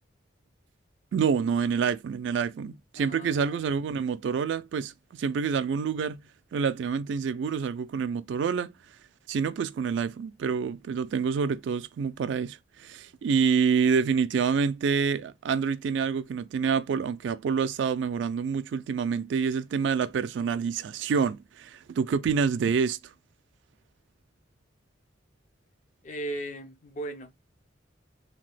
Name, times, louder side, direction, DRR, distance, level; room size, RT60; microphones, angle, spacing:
voice 1, 1.1-6.2 6.5-8.7 9.3-23.0, right 6 dB, 70° right, 0.3 m, -27 dB
voice 2, 3.0-3.7 26.0-27.3, right 1 dB, 40° left, 0.4 m, -37 dB
2.8 x 2.2 x 3.2 m
head